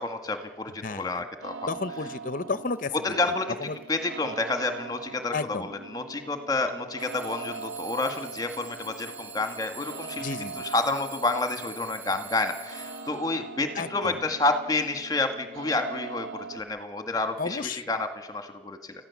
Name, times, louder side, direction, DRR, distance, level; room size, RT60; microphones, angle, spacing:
voice 1, 0.0-1.7 3.0-3.5 3.9-10.2 10.6-18.9, left 2 dB, 20° left, 6 dB, 1.8 m, -29 dB
voice 2, 0.8-1.2 1.7-3.2 3.6-3.8 5.3-5.7 10.2-10.7 13.7-14.2 17.4-17.8, left 4 dB, 45° left, 13 dB, 0.7 m, -32 dB
sound 1, 1.4-16.6, right 5 dB, 85° right, 2.2 m, -42 dB
Alarm / Clock, 1.9-2.1 2.6-3.1 3.6-4.0 4.9-5.0 7.0-13.4, right 5 dB, 10° right, 4.1 m, -45 dB
29.5 x 15.0 x 7.2 m, 1.3 s
head